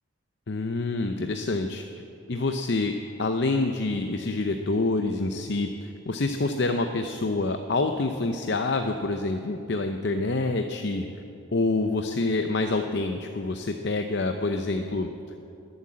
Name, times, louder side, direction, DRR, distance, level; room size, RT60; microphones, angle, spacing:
voice 1, 0.5-1.8 2.3-2.9 3.2-11.1 11.5-15.1, left 3 dB, 55° left, 6 dB, 0.6 m, -27 dB
21.0 x 8.1 x 7.5 m, 2.7 s
head